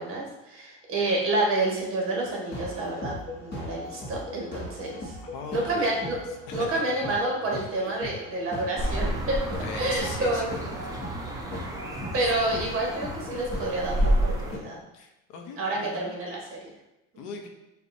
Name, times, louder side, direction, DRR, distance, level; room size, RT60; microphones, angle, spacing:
voice 1, 0.0-5.2 5.5-6.2 6.5-9.4 9.7-10.8 12.1-14.8 15.6-16.7, right 2 dB, 35° right, -2 dB, 1.4 m, -29 dB
sound 1, 2.4-14.6, left 1 dB, 30° left, 1.0 m, -39 dB
voice 2, 5.3-6.2 6.5-6.8 7.8-8.0 9.6-10.6 12.4-12.5 14.9-16.1 17.2-17.5, left 5 dB, 75° left, 3 dB, 0.8 m, -40 dB
sound 2, 8.8-14.5, right 1 dB, 10° right, 0.3 m, -30 dB
6.6 x 2.4 x 2.6 m, 0.93 s
cardioid pair, 130°, 35 cm